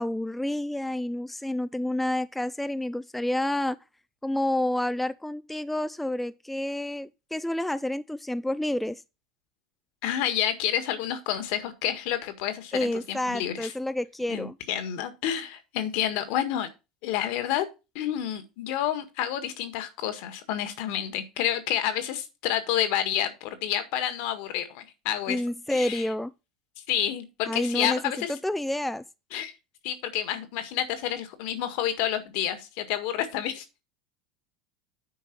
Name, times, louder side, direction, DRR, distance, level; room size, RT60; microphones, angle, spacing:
voice 1, 0.0-3.8 4.2-9.0 12.7-14.6 25.3-26.3 27.5-29.0, left 1 dB, 5° left, 0.4 m, -29 dB
voice 2, 10.0-13.7 14.3-16.7 17.0-17.7 18.0-25.4 25.7-26.0 26.9-28.3 29.3-29.5 29.8-33.7, left 11 dB, 60° left, 1.8 m, -29 dB
9.4 x 5.4 x 4.6 m
hypercardioid pair, 80°, 3 cm